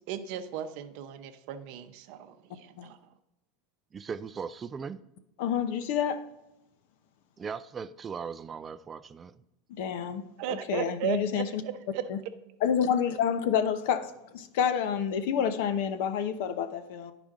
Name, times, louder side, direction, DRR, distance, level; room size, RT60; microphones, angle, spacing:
voice 1, 0.1-3.0 10.4-12.1, right 9 dB, 55° right, 0.6 m, -36 dB
voice 2, 3.9-5.0 7.4-9.4, right 6 dB, 20° right, 0.3 m, -38 dB
voice 3, 5.4-6.2 9.8-11.6 12.1-12.2 12.6-17.1, left 8 dB, 65° left, 0.7 m, -28 dB
10.5 x 5.0 x 3.7 m
supercardioid pair, 160°, 0 cm